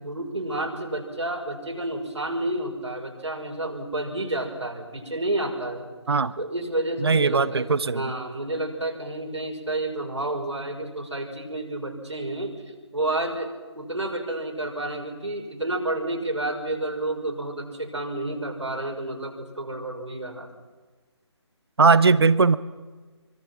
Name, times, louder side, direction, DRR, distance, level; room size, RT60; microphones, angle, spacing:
voice 1, 0.0-5.9 6.4-20.5, right 1 dB, 80° right, 1 dB, 5.9 m, -30 dB
voice 2, 7.0-8.1 21.8-22.6, right 4 dB, 60° right, 17 dB, 0.9 m, -19 dB
25.5 x 24.5 x 6.0 m, 1.4 s
figure-of-eight pair, 145°, 15 cm